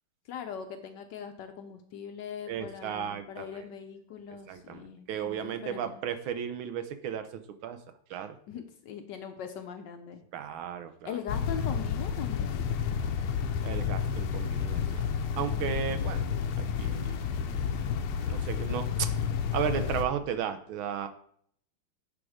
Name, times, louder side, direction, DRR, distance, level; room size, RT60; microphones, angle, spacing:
voice 1, 0.3-6.0 8.5-10.2 11.0-12.7, left 7 dB, 70° left, 7 dB, 1.2 m, -41 dB
voice 2, 2.5-3.6 4.5-7.8 8.1-8.3 10.3-11.2 13.6-15.1 15.4-16.3 16.6-17.2 18.2-19.1 19.5-21.1, right 8 dB, 80° right, 9 dB, 1.5 m, -35 dB
sound 1, 11.3-20.0, left 7 dB, 85° left, 1.6 m, -30 dB
10.0 x 3.6 x 4.9 m, 0.63 s
omnidirectional pair, 2.3 m